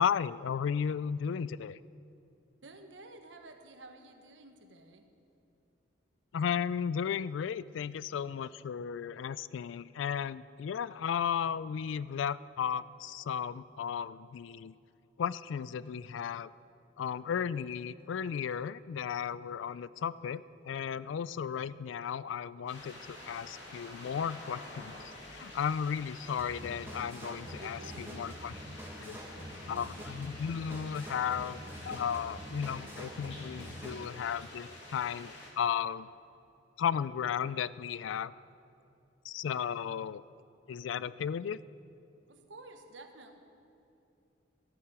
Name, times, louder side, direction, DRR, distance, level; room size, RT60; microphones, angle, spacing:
voice 1, 0.0-1.8 6.3-14.7 15.2-16.5 17.0-28.6 29.0-29.2 29.7-36.1 36.8-38.3 39.2-40.2 40.7-41.6, left 7 dB, 85° left, 18 dB, 0.3 m, -34 dB
voice 2, 2.6-5.1 27.6-28.2 42.3-43.4, right 2 dB, 75° right, 5 dB, 1.2 m, -51 dB
sound 1, 22.7-35.5, left 1 dB, 70° left, 2.5 m, -49 dB
sound 2, 26.4-34.1, equal, 10° right, 1.5 m, -46 dB
14.0 x 12.5 x 4.9 m, 2.7 s
head